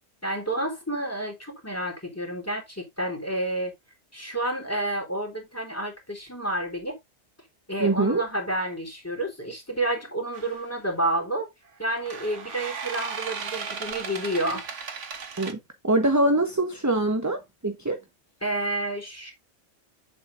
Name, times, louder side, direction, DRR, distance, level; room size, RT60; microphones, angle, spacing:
voice 1, 0.2-3.7 4.1-7.0 7.7-11.5 11.8-14.7 18.4-19.3, right 1 dB, 10° left, 3.4 m, -30 dB
voice 2, 7.8-8.2 15.4-15.6 15.8-18.0, right 2 dB, 15° right, 1.0 m, -23 dB
sound 1, 10.3-10.6 11.9-15.5, right 5 dB, 90° right, 1.7 m, -36 dB
8.7 x 7.6 x 2.6 m
omnidirectional pair, 1.2 m